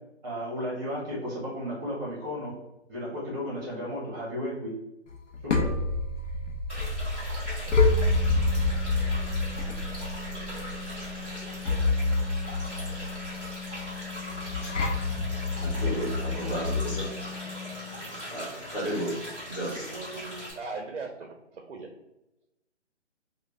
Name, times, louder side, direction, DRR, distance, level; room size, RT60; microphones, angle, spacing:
voice 1, 0.2-2.5 2.9-4.7 5.4-5.7, equal, 20° right, -4 dB, 1.0 m, -34 dB
sound 1, 5.1-17.0, left 3 dB, 80° left, 0.8 m, -28 dB
sound 2, 6.7-20.5, equal, 10° left, 0.7 m, -40 dB
Organ, 7.7-18.3, left 6 dB, 60° left, 1.0 m, -41 dB
voice 2, 15.6-17.2 18.3-20.5, equal, 45° left, -3 dB, 1.4 m, -34 dB
voice 3, 16.3-16.6 17.5-17.6 18.6-18.7 20.6-21.9, right 4 dB, 60° right, 4 dB, 0.5 m, -39 dB
3.1 x 2.3 x 3.3 m, 0.93 s
hypercardioid pair, 165°, 36 cm